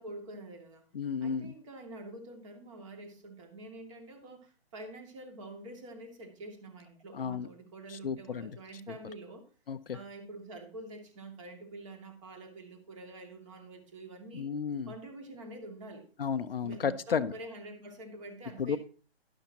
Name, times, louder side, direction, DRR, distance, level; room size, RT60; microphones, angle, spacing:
voice 1, 0.0-0.9 1.2-9.5 9.9-14.5 14.9-16.1 16.6-18.8, right 2 dB, 30° right, 4 dB, 2.5 m, -46 dB
voice 2, 0.9-1.5 7.1-7.5 7.9-8.5 9.7-10.0 14.3-14.9 16.2-17.3 18.6-18.8, left 6 dB, 65° left, 11 dB, 0.8 m, -33 dB
11.5 x 11.5 x 2.9 m, 0.37 s
hypercardioid pair, 160°, 31 cm